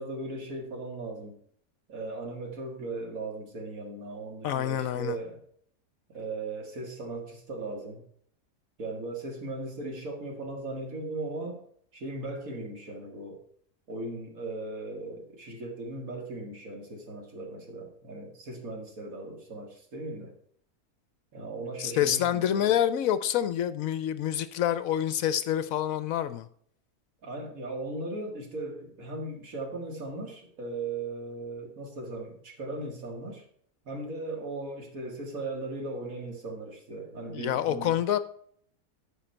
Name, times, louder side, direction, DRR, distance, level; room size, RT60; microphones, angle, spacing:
voice 1, 0.0-1.4 1.9-5.4 6.1-8.0 8.8-11.6 11.9-13.4 13.9-20.3 21.3-22.7 27.2-33.4 33.9-38.0, right 2 dB, 65° right, 2 dB, 2.4 m, -38 dB
voice 2, 4.4-5.2 21.8-26.5 37.3-38.2, left 10 dB, 70° left, 13 dB, 0.9 m, -27 dB
14.0 x 5.1 x 4.4 m, 0.63 s
omnidirectional pair, 1.6 m